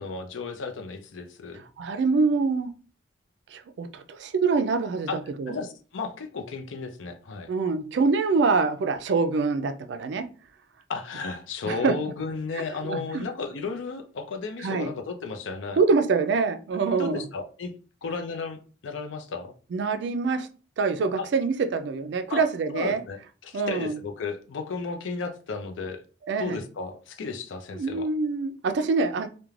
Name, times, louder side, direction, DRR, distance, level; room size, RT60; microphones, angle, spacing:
voice 1, 0.0-1.6 5.1-5.2 5.5-7.5 10.9-15.8 17.0-17.7 18.0-19.5 21.2-21.3 22.3-22.4 22.7-23.2 23.4-26.0 26.4-28.1, left 4 dB, 80° left, 6 dB, 0.5 m, -34 dB
voice 2, 1.5-2.7 3.5-5.6 7.5-10.3 11.7-11.9 12.5-13.3 14.6-14.9 15.8-17.3 19.7-20.5 20.8-23.0 23.5-24.0 26.3-26.6 27.7-29.3, right 4 dB, 65° right, 7 dB, 0.3 m, -25 dB
2.4 x 2.1 x 3.1 m, 0.37 s
head